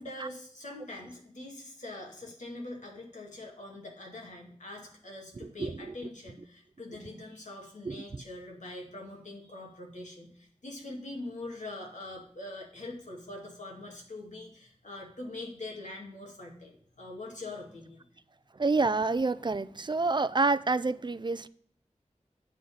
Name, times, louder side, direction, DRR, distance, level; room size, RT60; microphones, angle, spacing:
voice 1, 0.0-18.1, left 2 dB, 80° left, 0 dB, 2.3 m, -43 dB
voice 2, 7.9-8.2 18.6-21.5, right 3 dB, 40° right, 16 dB, 0.4 m, -28 dB
8.9 x 3.9 x 7.0 m, 0.63 s
wide cardioid pair, 50°, 12 cm